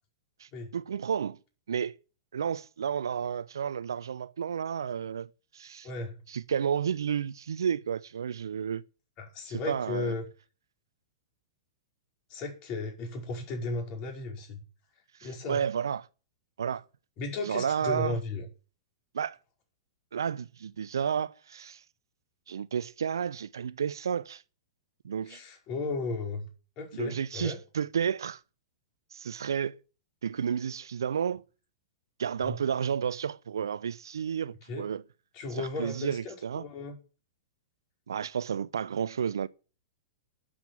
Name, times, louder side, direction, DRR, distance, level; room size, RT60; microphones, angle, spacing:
voice 1, 0.4-1.4 1.7-2.0 2.3-5.9 6.3-8.8 9.5-10.1 15.2-16.1 16.6-16.8 17.4-18.2 19.1-19.4 20.1-21.8 22.5-24.4 25.0-25.4 26.9-28.4 29.1-29.8 30.2-31.4 32.2-35.0 35.6-36.6 38.1-39.5, right 7 dB, 65° right, 0.7 m, -31 dB
voice 2, 5.8-6.2 9.2-10.3 12.3-14.6 15.2-15.6 17.2-18.5 25.3-26.5 26.8-27.6 32.5-32.6 34.7-34.9 35.3-37.0, left 3 dB, 35° left, 5.3 m, -35 dB
11.5 x 8.8 x 7.3 m
figure-of-eight pair, 100°, 2 cm